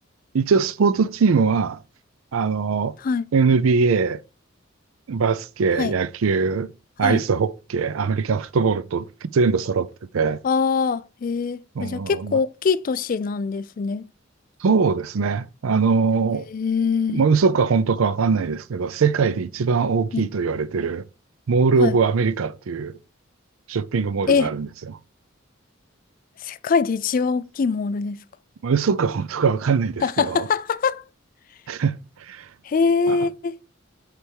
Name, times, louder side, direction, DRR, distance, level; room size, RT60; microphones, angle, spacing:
voice 1, 0.3-1.8 2.3-3.0 3.3-4.2 5.1-6.7 7.0-10.4 11.8-12.4 14.6-16.5 17.1-21.0 21.5-23.0 23.7-25.0 28.6-30.5 31.7-32.0 32.3-32.5 33.1-33.2, right 5 dB, 80° right, 0.5 m, -21 dB
voice 2, 10.4-14.0 16.5-17.2 20.1-20.2 21.8-22.0 24.3-24.5 26.4-28.2 30.0-31.0 32.6-33.6, left 5 dB, 40° left, 0.3 m, -23 dB
8.0 x 3.4 x 4.5 m
head